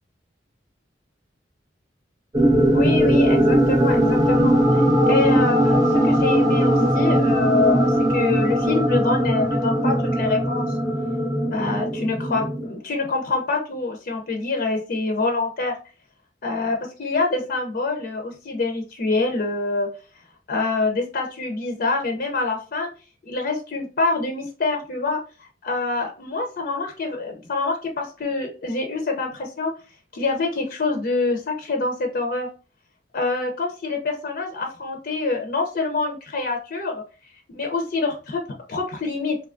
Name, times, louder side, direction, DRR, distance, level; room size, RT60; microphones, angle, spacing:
sound 1, 2.3-12.7, equal, 20° right, 0.5 m, -19 dB
voice 1, 2.7-10.7 11.5-15.8 16.4-19.9 20.5-22.9 23.2-29.7 30.1-32.5 33.1-37.0 37.5-38.4 38.7-39.4, left 3 dB, 55° left, 3 dB, 0.6 m, -26 dB
3.4 x 2.7 x 2.5 m, 0.35 s
head